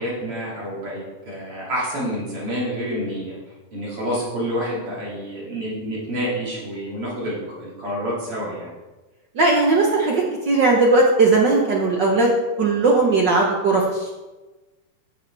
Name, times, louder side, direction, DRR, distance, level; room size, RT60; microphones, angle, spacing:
voice 1, 0.0-3.4 3.7-8.7, equal, 50° right, -6 dB, 3.5 m, -28 dB
voice 2, 9.3-12.3 12.6-14.1, right 3 dB, 70° right, -1 dB, 1.0 m, -18 dB
9.9 x 6.8 x 4.6 m, 1.2 s
omnidirectional pair, 3.4 m